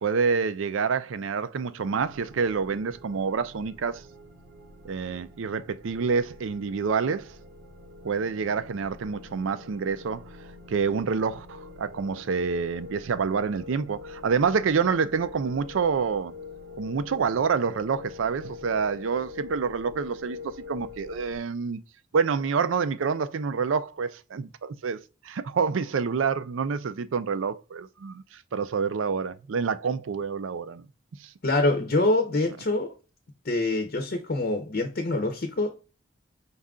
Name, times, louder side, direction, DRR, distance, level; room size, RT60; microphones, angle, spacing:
voice 1, 0.0-4.0 4.8-7.3 8.0-10.2 10.7-16.3 16.8-21.8 22.1-30.9 31.2-31.3, right 5 dB, 80° right, 0.4 m, -27 dB
sound 1, 1.8-21.4, left 4 dB, 55° right, 0.8 m, -45 dB
voice 2, 31.4-32.9 33.4-35.8, left 2 dB, 50° left, 0.6 m, -25 dB
5.4 x 2.4 x 3.6 m
head